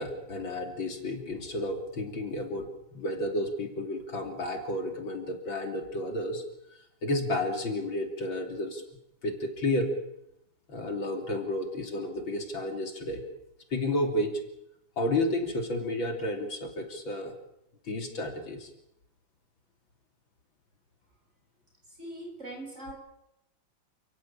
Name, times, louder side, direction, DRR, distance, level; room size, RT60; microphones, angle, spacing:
voice 1, 0.0-6.4 7.0-8.8 9.2-9.9 10.7-13.2 13.7-14.4 15.0-17.3 17.8-18.7, left 1 dB, 65° left, 4 dB, 3.8 m, -31 dB
voice 2, 21.9-22.9, right 1 dB, 30° right, 2 dB, 8.3 m, -41 dB
29.5 x 17.0 x 8.8 m, 0.82 s
omnidirectional pair, 2.3 m